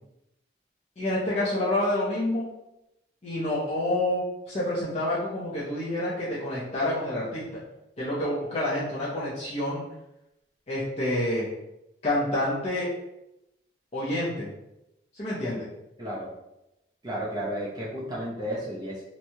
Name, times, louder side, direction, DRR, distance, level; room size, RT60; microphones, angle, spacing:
voice 1, 1.0-2.4 3.2-7.6 8.0-9.8 10.7-11.5 12.0-12.9 13.9-14.5 15.1-15.7, left 1 dB, 35° left, -8 dB, 0.6 m, -28 dB
voice 2, 16.0-16.3 17.0-19.0, equal, 20° right, -6 dB, 0.5 m, -32 dB
3.0 x 2.2 x 2.7 m, 0.90 s
head